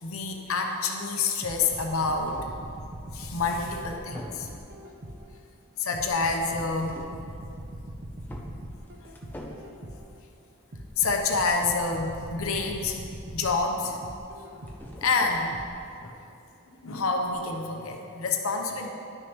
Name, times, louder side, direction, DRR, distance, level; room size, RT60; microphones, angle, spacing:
voice 1, 0.0-2.4 3.1-4.5 5.8-7.0 11.0-13.0 13.3-14.0 14.5-14.7 15.0-15.6 16.0-16.2 16.7-18.9, left 4 dB, 75° left, 2 dB, 0.9 m, -28 dB
sound 1, 1.4-2.6 3.5-3.8 4.1-4.8 6.4-7.2 7.6-7.8 8.3-9.8 14.2-15.8 17.3-17.4, equal, 10° left, 0.6 m, -45 dB
sound 2, 1.4-5.4 5.9-10.2 10.7-15.0 15.5-15.7, right 1 dB, 50° right, 0.7 m, -41 dB
11.5 x 6.3 x 3.1 m, 2.5 s
head